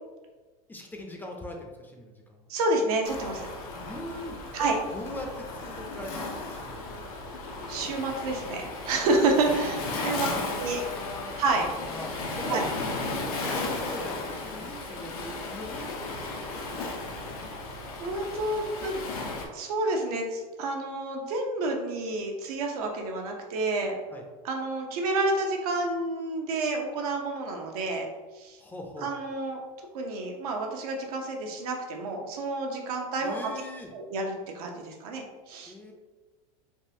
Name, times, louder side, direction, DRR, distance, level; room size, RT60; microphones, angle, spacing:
voice 1, 0.7-2.5 3.9-7.0 9.9-12.6 13.1-17.6 24.1-24.2 28.6-29.1 33.2-33.9 35.7-35.9, left 1 dB, 10° left, 1 dB, 0.4 m, -41 dB
voice 2, 2.5-3.5 4.5-4.8 7.7-10.3 10.6-10.8 11.4-11.7 12.5-12.6 18.0-18.9 19.5-23.9 24.4-28.1 28.3-28.6 29.0-29.6 29.9-33.4 33.9-35.7, right 2 dB, 80° right, 2 dB, 0.7 m, -29 dB
Waves surf, 3.0-19.5, left 3 dB, 85° left, 0.7 m, -35 dB
3.6 x 2.4 x 2.7 m, 1.3 s
supercardioid pair, 120°, 19 cm